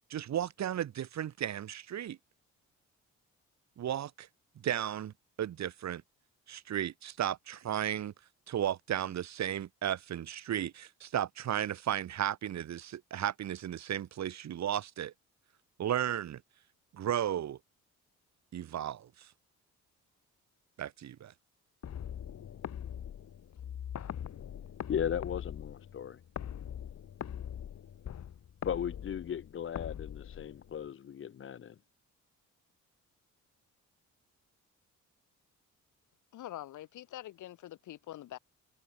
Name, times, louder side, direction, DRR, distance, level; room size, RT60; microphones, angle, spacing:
voice 1, 0.1-2.2 3.8-4.3 4.6-6.0 6.5-8.1 8.5-15.1 15.8-16.4 16.9-17.6 18.5-19.3 20.8-21.3, right 10 dB, 65° right, 2.1 m, -34 dB
sound 1, 21.8-30.9, left 9 dB, 60° left, 6.4 m, -42 dB
voice 2, 24.9-26.2 28.6-31.7, left 9 dB, 45° left, 0.8 m, -36 dB
voice 3, 36.3-38.4, left 13 dB, 80° left, 4.1 m, -45 dB
cardioid pair, 90°, 30 cm